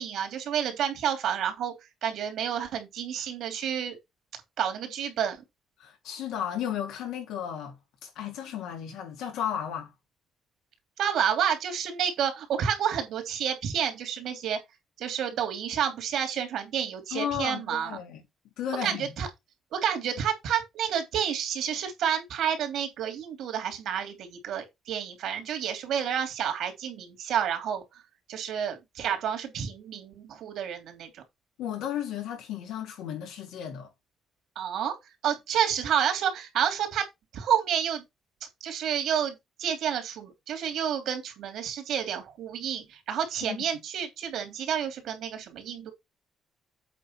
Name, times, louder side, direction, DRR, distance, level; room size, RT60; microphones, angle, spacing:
voice 1, 0.0-1.7 2.0-4.0 4.6-5.4 11.0-14.6 15.0-18.0 18.8-19.3 19.7-27.8 28.3-31.2 34.5-34.9 35.2-37.1 37.3-38.0 38.6-45.9, right 8 dB, 75° right, 3.0 m, -29 dB
voice 2, 5.8-7.8 8.0-9.9 17.1-18.2 18.6-19.1 31.6-33.9 43.4-43.6, left 9 dB, 90° left, 3.1 m, -34 dB
8.3 x 3.7 x 5.9 m
cardioid pair, 90°, 0 cm